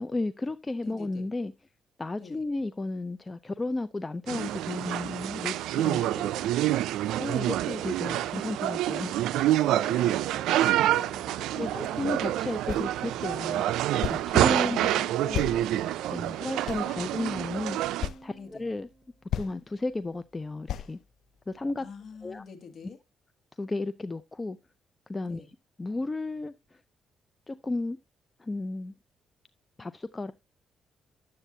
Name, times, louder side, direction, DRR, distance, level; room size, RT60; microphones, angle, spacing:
voice 1, 0.0-1.5 2.0-6.0 7.2-9.3 10.9-11.1 11.6-13.7 14.1-14.9 15.2-15.5 16.1-17.8 18.2-18.9 19.4-21.0 21.5-21.9 22.2-22.4 23.6-24.6 25.1-25.4 25.8-26.8 27.5-28.0 28.4-28.9 29.8-30.3, left 2 dB, 20° left, 0.5 m, -33 dB
voice 2, 0.8-1.3 2.2-2.4 5.9-6.3 9.7-10.4 10.9-12.0 14.5-15.1 18.3-18.7 21.8-23.0 25.3-25.5, left 5 dB, 55° left, 2.0 m, -46 dB
sound 1, 4.3-18.1, right 13 dB, 85° right, 0.4 m, -27 dB
sound 2, 12.7-12.9 14.0-14.3 15.3-16.1 16.7-17.3 18.0-18.2 18.9-19.0 19.3-19.5 20.7-20.9, left 10 dB, 70° left, 0.6 m, -33 dB
Guitar, 12.7-22.4, left 2 dB, 5° left, 5.1 m, -56 dB
10.0 x 7.8 x 2.7 m
cardioid pair, 90°, 0 cm